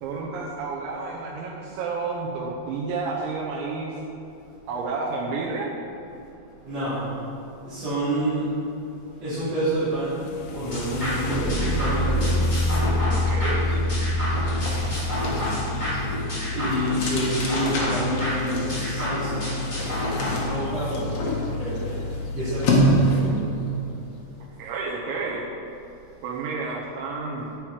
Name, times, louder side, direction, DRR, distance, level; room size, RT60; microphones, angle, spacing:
voice 1, 0.0-4.0 4.7-5.7 13.1-13.6 24.6-25.5 26.2-27.5, right 4 dB, 80° right, -4 dB, 3.3 m, -30 dB
voice 2, 6.6-7.1 7.6-8.6 9.2-10.2 10.5-12.4 15.3-15.4 16.5-19.6 20.2-22.0 22.3-23.7, right 1 dB, 40° right, -14 dB, 3.9 m, -28 dB
sound 1, 9.5-9.7 10.0-23.4, left 1 dB, 60° left, 1.8 m, -28 dB
sound 2, 10.1-18.0 20.0-20.2 20.6-21.2 21.8-21.9 22.4-22.7, left 1 dB, 85° left, 2.2 m, -27 dB
sound 3, 10.7-20.3, left 1 dB, 10° left, 2.3 m, -30 dB
11.5 x 9.2 x 5.0 m, 2.6 s
omnidirectional pair, 5.2 m